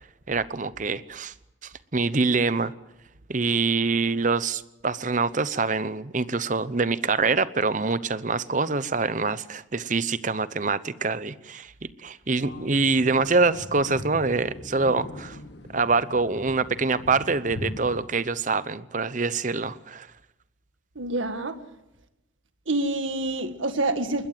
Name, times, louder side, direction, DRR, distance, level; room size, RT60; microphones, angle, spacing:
voice 1, 0.3-1.3 1.6-2.7 3.3-11.7 12.0-15.4 15.7-20.1, right 4 dB, 40° right, 15 dB, 0.8 m, -25 dB
sound 1, 12.4-18.0, left 1 dB, 60° left, 2.0 m, -40 dB
voice 2, 21.0-21.6 22.7-24.3, right 2 dB, 85° right, 9 dB, 1.9 m, -27 dB
21.0 x 20.5 x 7.6 m, 0.90 s
head